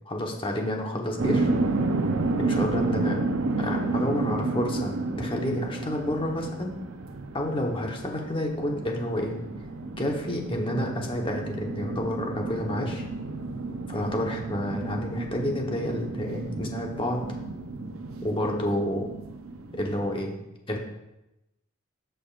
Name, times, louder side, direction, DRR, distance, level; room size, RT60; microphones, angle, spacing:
voice 1, 0.1-1.5 2.4-3.2 3.6-6.8 7.3-9.4 10.0-13.1 13.9-17.3 18.2-19.1 19.7-20.3 20.7-20.8, left 1 dB, 25° left, 1 dB, 1.1 m, -29 dB
sound 1, 1.2-20.1, right 3 dB, 90° right, 0.7 m, -31 dB
15.5 x 5.2 x 2.5 m, 0.93 s
head